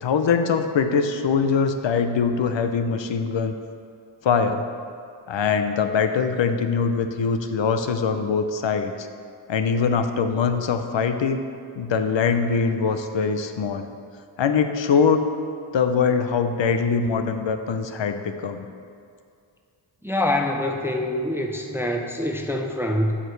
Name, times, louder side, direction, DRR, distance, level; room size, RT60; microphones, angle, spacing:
voice 1, 0.0-3.5 4.2-4.6 5.3-8.9 9.5-11.4 11.8-13.9 14.4-15.2 15.7-18.7, left 5 dB, 65° left, 8 dB, 0.6 m, -22 dB
voice 2, 20.0-23.2, left 1 dB, 5° right, 2 dB, 0.4 m, -25 dB
12.5 x 5.0 x 3.2 m, 2.4 s
wide cardioid pair, 110°, 48 cm